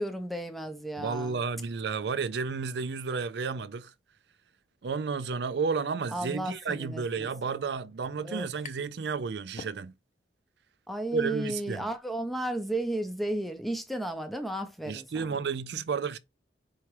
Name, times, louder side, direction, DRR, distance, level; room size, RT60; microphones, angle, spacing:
voice 1, 0.0-1.4 6.1-7.3 8.2-8.5 10.9-15.1, right 1 dB, ahead, 0.6 m, -33 dB
voice 2, 1.0-3.9 4.8-9.9 11.1-11.9 14.9-16.2, right 5 dB, 65° right, 0.4 m, -32 dB
sound 1, 8.6-9.0 9.4-10.3, left 6 dB, 40° left, 0.3 m, -48 dB
4.7 x 2.9 x 3.1 m
head